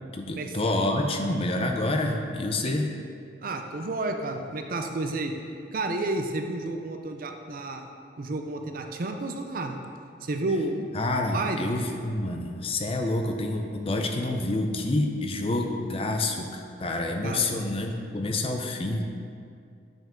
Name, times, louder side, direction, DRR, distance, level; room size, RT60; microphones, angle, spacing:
voice 1, 0.1-3.0 10.9-19.0, left 2 dB, 30° left, 3 dB, 0.5 m, -28 dB
voice 2, 3.4-5.3 5.7-7.9 8.2-9.8 10.2-10.9 11.3-11.7 15.5-15.6 17.2-17.5, right 2 dB, 50° right, 5 dB, 0.5 m, -31 dB
7.7 x 5.0 x 3.8 m, 2.3 s
head